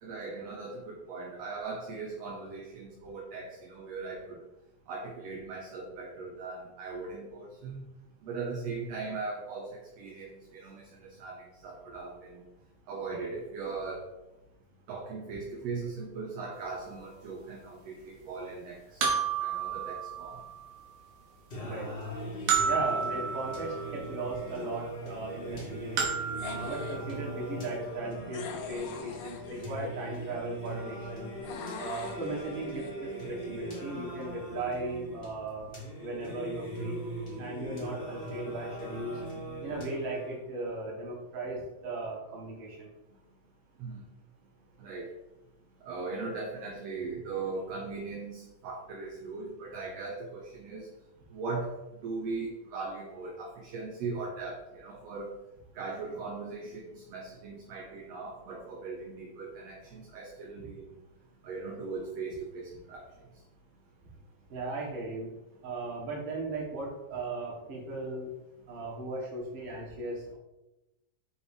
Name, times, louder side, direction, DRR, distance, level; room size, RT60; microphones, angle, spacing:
voice 1, 0.0-4.4 4.9-7.8 8.2-12.4 12.9-14.0 14.9-20.4 28.4-28.5 43.8-44.0 44.8-45.1 45.8-50.9 51.3-51.8 52.0-55.4 55.8-60.9 61.4-63.1, right 4 dB, 70° right, -2 dB, 1.9 m, -39 dB
sound 1, 16.6-16.7 19.0-20.9 22.5-24.1 26.0-27.4, right 6 dB, 85° right, 2.7 m, -31 dB
Singing, 21.5-40.5, right 1 dB, 30° left, 1.0 m, -40 dB
voice 2, 22.6-26.0 26.4-31.3 31.8-35.7 36.0-37.0 37.4-39.2 39.6-42.9 60.6-60.7 64.0-64.1 64.5-65.3 65.6-68.3 68.7-70.4, right 2 dB, 45° right, -3 dB, 2.2 m, -37 dB
sound 2, 26.3-27.0 28.3-30.0 31.4-32.9, left 7 dB, 75° left, 1.7 m, -43 dB
7.0 x 3.1 x 4.9 m, 0.98 s
omnidirectional pair, 3.4 m